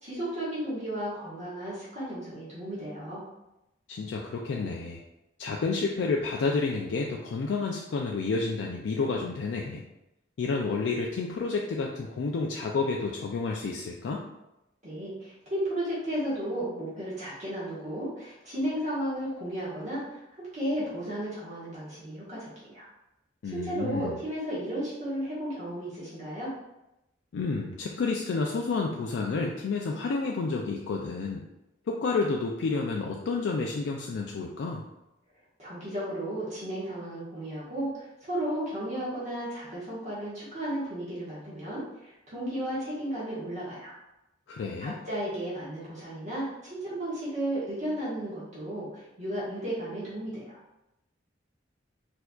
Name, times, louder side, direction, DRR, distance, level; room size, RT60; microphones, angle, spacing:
voice 1, 0.0-3.2 14.8-22.8 23.4-26.5 35.6-43.9 44.8-50.6, right 1 dB, 40° right, -9 dB, 1.2 m, -34 dB
voice 2, 3.9-5.0 5.4-9.8 10.4-14.2 23.4-24.2 27.3-31.5 31.9-34.8 44.5-45.0, left 4 dB, 75° left, 0 dB, 0.3 m, -30 dB
4.3 x 2.7 x 2.3 m, 0.91 s
head